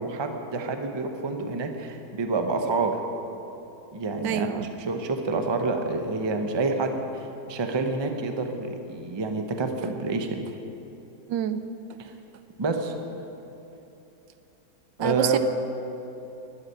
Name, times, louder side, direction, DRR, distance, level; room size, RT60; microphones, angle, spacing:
voice 1, 0.0-3.0 3.9-4.5 4.8-10.5 12.0-12.1 12.6-13.0 15.0-15.4, right 3 dB, 25° right, 5 dB, 0.5 m, -28 dB
voice 2, 4.2-4.6 11.3-11.6 15.0-15.4, right 10 dB, 80° right, 11 dB, 1.3 m, -27 dB
11.5 x 8.3 x 10.0 m, 3.0 s
omnidirectional pair, 2.0 m